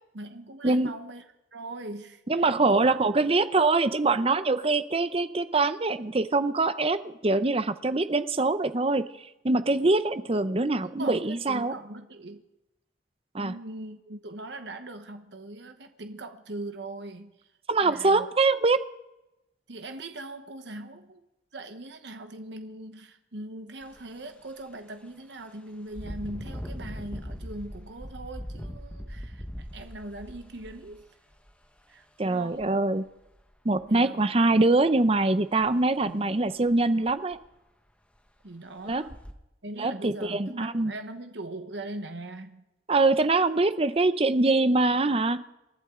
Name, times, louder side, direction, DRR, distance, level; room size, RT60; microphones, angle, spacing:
voice 1, 0.1-1.2 1.5-2.2 2.7-2.8 11.0-12.4 13.4-17.3 17.8-18.3 19.7-21.2 21.5-31.1 31.9-32.8 33.9-34.3 36.0-36.4 38.4-39.2 39.6-42.6, right 2 dB, 70° right, 7 dB, 1.1 m, -40 dB
voice 2, 2.3-11.7 13.3-13.5 17.7-18.8 32.2-33.0 33.6-37.4 38.9-39.0 39.8-40.9 42.9-45.4, right 3 dB, 30° right, 12 dB, 0.7 m, -24 dB
Engine, 23.8-24.0 24.5-24.6 25.9-31.7 32.5-32.6 33.1-33.8 35.6-35.7 36.1-36.2 36.7-36.8 37.1-37.6 38.2-38.3 38.9-39.3, equal, 5° left, 1.3 m, -40 dB
28.0 x 11.5 x 3.8 m, 0.94 s
head